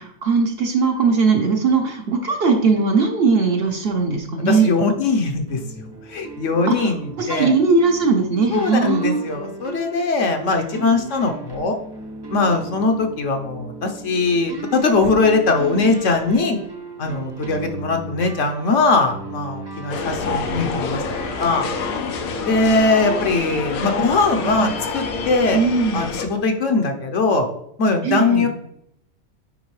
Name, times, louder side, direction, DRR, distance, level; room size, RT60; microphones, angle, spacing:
voice 1, 0.0-4.7 6.7-9.2 23.8-24.1 24.4-24.7 25.5-26.1 28.0-28.5, right 4 dB, 55° right, 3 dB, 0.9 m, -19 dB
voice 2, 4.5-7.5 8.5-11.8 12.3-16.6 17.0-21.7 22.4-25.6 25.9-27.5 27.8-28.5, left 3 dB, 65° left, 4 dB, 1.1 m, -20 dB
sound 1, 5.5-22.4, right 3 dB, 25° right, 0.6 m, -37 dB
sound 2, 19.9-26.2, left 4 dB, 85° left, 1.2 m, -27 dB
9.5 x 3.7 x 3.1 m, 0.75 s
omnidirectional pair, 1.4 m